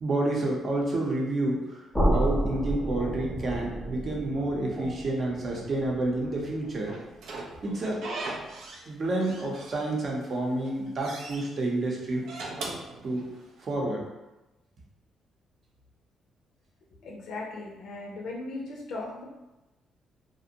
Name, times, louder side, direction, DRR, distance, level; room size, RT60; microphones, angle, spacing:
voice 1, 0.0-6.9 7.6-8.1 8.9-12.3 13.0-13.3 13.6-14.0, right 2 dB, 45° right, -2 dB, 0.7 m, -29 dB
sound 1, 1.9-7.8, right 1 dB, ahead, 0.6 m, -31 dB
Slam / Squeak, 6.9-8.9 9.2-10.2 10.5-11.4 12.1-13.6, right 2 dB, 80° right, 0.4 m, -39 dB
voice 2, 17.0-19.2, left 2 dB, 75° left, -2 dB, 0.5 m, -37 dB
2.5 x 2.1 x 2.7 m, 1.0 s
cardioid pair, 90°, 0 cm